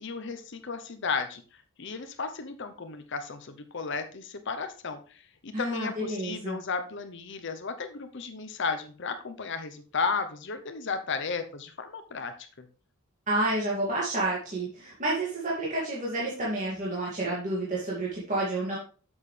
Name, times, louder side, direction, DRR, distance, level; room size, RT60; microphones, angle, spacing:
voice 1, 0.0-1.4 1.8-12.3, left 5 dB, 55° left, 8 dB, 0.7 m, -34 dB
voice 2, 5.5-6.6 13.3-18.8, right 2 dB, 35° right, -6 dB, 2.3 m, -30 dB
8.5 x 7.2 x 3.3 m, 0.38 s
head